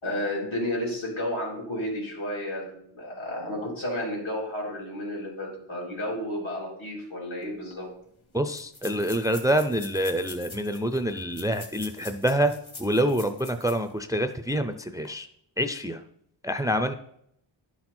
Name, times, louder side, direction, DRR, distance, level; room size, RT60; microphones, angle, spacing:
voice 1, 0.0-7.9, left 1 dB, 80° left, -4 dB, 3.7 m, -32 dB
sound 1, 7.4-7.5 7.7-7.8 8.5-13.9 14.3-14.4 14.9-15.1, left 3 dB, 50° left, 1.9 m, -45 dB
voice 2, 8.3-12.5 12.8-15.3 15.6-16.0 16.4-16.9, equal, 10° right, 9 dB, 0.4 m, -26 dB
11.0 x 6.0 x 4.4 m, 0.72 s
wide cardioid pair, 115°, 47 cm